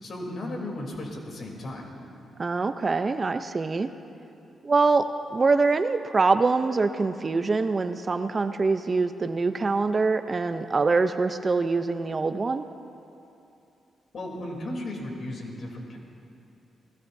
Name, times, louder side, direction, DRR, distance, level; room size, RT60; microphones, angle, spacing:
voice 1, 0.0-1.9 14.1-16.0, left 1 dB, 60° left, 0 dB, 3.3 m, -35 dB
voice 2, 2.4-3.9 4.6-12.6, right 4 dB, 35° right, 9 dB, 0.6 m, -24 dB
27.0 x 17.5 x 2.7 m, 2.8 s
cardioid pair, 75°, 0 cm